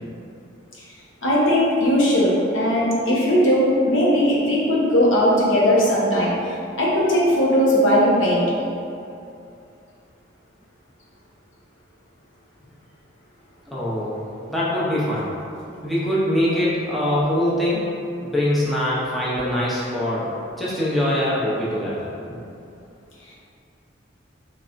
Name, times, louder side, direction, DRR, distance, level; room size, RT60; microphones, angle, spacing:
voice 1, 1.2-6.3 6.8-8.4, equal, 85° left, -6 dB, 0.8 m, -18 dB
voice 2, 13.7-14.2 14.5-15.3 15.8-17.8 18.2-20.3 20.6-22.1, left 1 dB, ahead, -9 dB, 0.6 m, -23 dB
4.1 x 3.1 x 2.5 m, 2.6 s
head